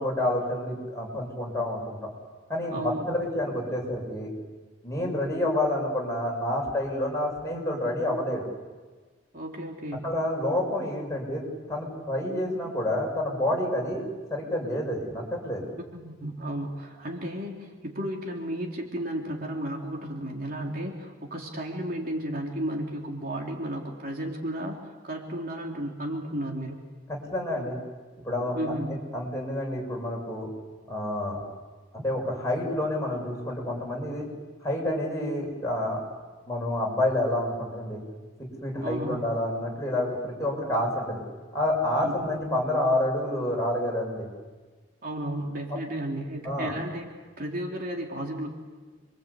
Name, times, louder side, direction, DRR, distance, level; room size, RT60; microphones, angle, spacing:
voice 1, 0.0-2.0 2.5-4.3 4.8-8.5 10.0-14.0 14.3-15.7 27.1-27.8 28.2-30.5 30.9-31.4 31.9-34.3 34.6-36.0 36.5-38.0 38.4-41.2 41.5-44.3 46.4-46.7, left 1 dB, 15° left, -2 dB, 6.9 m, -28 dB
voice 2, 2.7-3.1 9.3-10.1 15.7-24.8 25.0-26.8 28.6-29.0 38.8-39.2 42.0-42.4 45.0-48.5, right 1 dB, 50° right, 0 dB, 3.5 m, -33 dB
28.0 x 24.0 x 8.4 m, 1.4 s
head